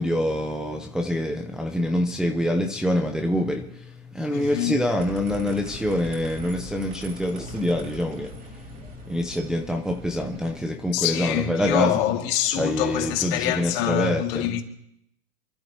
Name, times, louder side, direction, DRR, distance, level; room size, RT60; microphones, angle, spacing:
voice 1, 0.0-8.8 9.1-11.9 12.5-14.5, left 1 dB, ahead, 0.8 m, -26 dB
voice 2, 4.3-4.8 10.9-14.6, left 11 dB, 45° left, 2.3 m, -25 dB
sound 1, 5.0-10.6, equal, 20° right, 3.0 m, -41 dB
28.0 x 12.0 x 3.0 m
hypercardioid pair, 120°, 41 cm